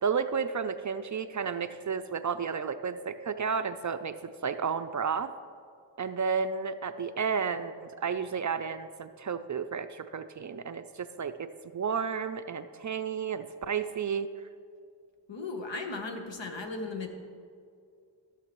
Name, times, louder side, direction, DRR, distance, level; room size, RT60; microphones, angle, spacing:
voice 1, 0.0-4.1 4.4-5.3 6.0-14.3, right 6 dB, 40° right, 10 dB, 0.4 m, -32 dB
voice 2, 15.3-17.1, left 3 dB, 70° left, 4 dB, 1.2 m, -36 dB
14.5 x 6.5 x 3.0 m, 2.3 s
cardioid pair, 50°, 46 cm